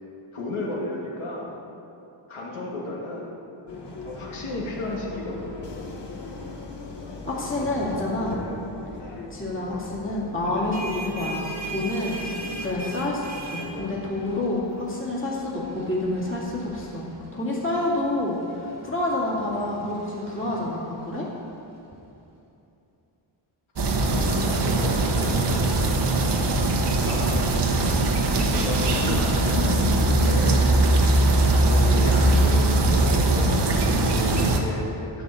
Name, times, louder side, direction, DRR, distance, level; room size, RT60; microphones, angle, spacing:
voice 1, 0.3-1.5 2.3-3.3 4.0-5.7 23.7-25.6 27.1-27.6 28.5-30.7 31.6-35.2, left 1 dB, 80° left, -4 dB, 2.3 m, -33 dB
sound 1, 3.7-13.9, left 3 dB, 55° left, 1.5 m, -38 dB
voice 2, 7.2-8.4 9.3-12.2 12.6-17.1 17.3-21.3, left 2 dB, 25° left, -5 dB, 2.3 m, -28 dB
sound 2, 10.5-21.8, right 2 dB, 35° right, 1.6 m, -40 dB
sound 3, 23.8-34.6, right 2 dB, 55° right, 1.2 m, -21 dB
11.5 x 5.7 x 8.3 m, 2.9 s
wide cardioid pair, 135°, 48 cm